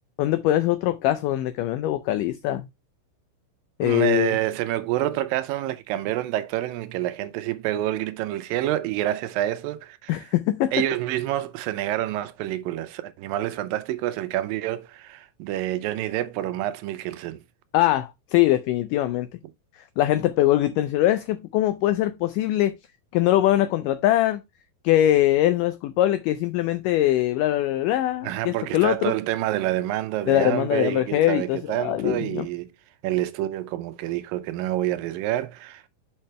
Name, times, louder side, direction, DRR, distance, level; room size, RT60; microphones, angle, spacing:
voice 1, 0.2-2.7 3.8-4.4 10.1-10.7 17.7-19.3 20.0-22.8 23.1-24.4 24.8-29.1 30.3-32.5, left 14 dB, 85° left, 1.9 m, -22 dB
voice 2, 3.8-10.3 10.7-17.4 28.2-32.7 33.0-35.9, right 14 dB, 80° right, 2.2 m, -28 dB
6.5 x 5.6 x 3.2 m
omnidirectional pair, 4.4 m